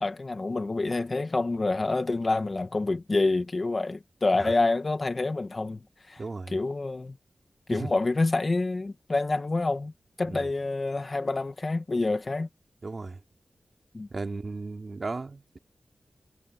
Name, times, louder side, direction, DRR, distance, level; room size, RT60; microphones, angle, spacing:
voice 1, 0.0-5.8 6.1-7.2 7.7-9.9 10.2-12.5 13.9-14.1, left 3 dB, 40° left, 1.9 m, -27 dB
voice 2, 6.2-6.6 7.7-7.9 10.2-10.5 12.8-13.2 14.1-15.6, right 3 dB, 45° right, 2.9 m, -35 dB
wide cardioid pair, 115°, 0 cm